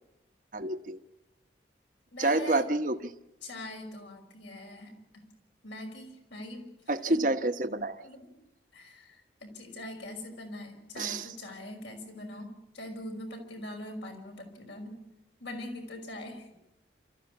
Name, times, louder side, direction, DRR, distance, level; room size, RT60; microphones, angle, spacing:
voice 1, 0.5-1.0 2.2-3.0 6.9-8.0 11.0-11.3, right 2 dB, 45° right, 8 dB, 1.1 m, -28 dB
voice 2, 2.1-2.7 3.4-5.2 5.6-7.2 8.0-8.3 8.7-15.0 15.4-16.6, left 1 dB, 75° left, 3 dB, 5.7 m, -42 dB
28.0 x 14.5 x 8.5 m, 0.90 s
head